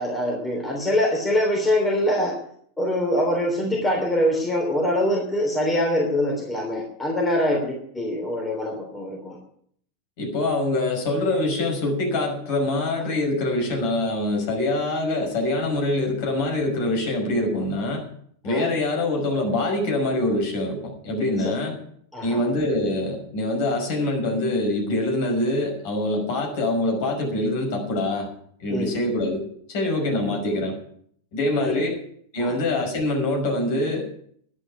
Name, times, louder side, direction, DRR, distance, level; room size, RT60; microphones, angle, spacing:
voice 1, 0.0-2.4 2.8-9.4 18.4-18.7 21.4-21.5 22.1-22.4 28.7-28.9 31.6-31.8 32.4-32.5, left 1 dB, 10° left, 0 dB, 3.3 m, -24 dB
voice 2, 10.2-18.0 18.4-21.8 22.2-28.3 28.6-30.8 31.3-32.0 32.3-34.3, left 2 dB, 50° left, 1 dB, 5.8 m, -24 dB
11.5 x 9.0 x 9.6 m, 0.63 s
figure-of-eight pair, 90°, 0 cm